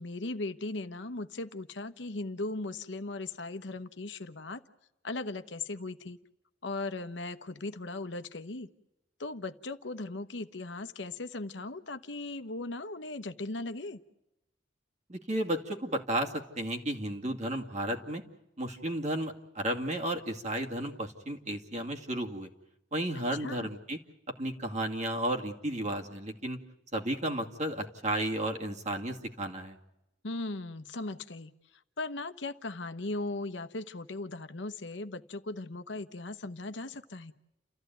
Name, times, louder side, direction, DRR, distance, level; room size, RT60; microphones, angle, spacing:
voice 1, 0.0-4.6 5.0-6.2 6.6-8.7 9.2-14.0 23.4-23.7 30.2-31.5 32.0-37.3, left 2 dB, 70° left, 11 dB, 1.0 m, -38 dB
voice 2, 15.1-18.2 18.6-22.5 22.9-24.0 24.4-26.6 26.9-29.8, right 1 dB, 40° right, 2 dB, 2.3 m, -33 dB
30.0 x 14.5 x 9.3 m, 0.91 s
head